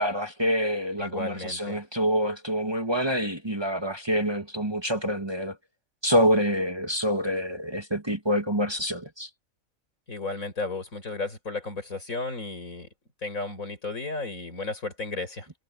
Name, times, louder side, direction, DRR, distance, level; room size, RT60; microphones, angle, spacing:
voice 1, 0.0-5.6 6.0-9.3, equal, 20° right, 1.9 m, -26 dB
voice 2, 1.0-1.8 10.1-12.9 13.2-15.5, left 3 dB, 85° left, 5.8 m, -34 dB
omnidirectional pair, 1.4 m